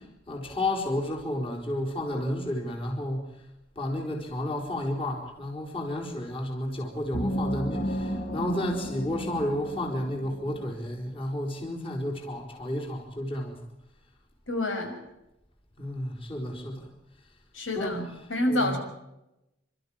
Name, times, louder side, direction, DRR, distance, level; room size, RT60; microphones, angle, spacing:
voice 1, 0.3-3.3 3.8-13.6 15.8-16.9 17.7-18.0 18.5-18.8, left 1 dB, 30° left, 0 dB, 4.3 m, -31 dB
sound 1, 7.1-10.7, equal, 45° left, 2.6 m, -33 dB
voice 2, 14.5-15.0 17.5-18.0 18.3-18.8, left 1 dB, 90° left, 3 dB, 6.2 m, -27 dB
29.0 x 13.5 x 8.8 m, 0.89 s
head